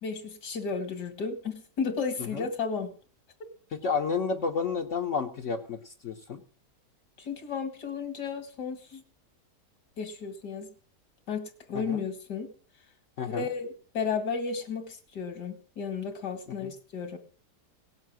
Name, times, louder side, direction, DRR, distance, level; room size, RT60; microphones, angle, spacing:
voice 1, 0.0-2.9 7.2-9.0 10.0-10.7 11.3-12.5 13.2-17.2, left 5 dB, 80° left, 8 dB, 2.5 m, -33 dB
voice 2, 3.7-6.4 11.7-12.0 13.2-13.5 16.6-16.7, left 5 dB, 55° left, 3 dB, 1.1 m, -31 dB
18.0 x 7.5 x 6.1 m, 0.41 s
omnidirectional pair, 1.8 m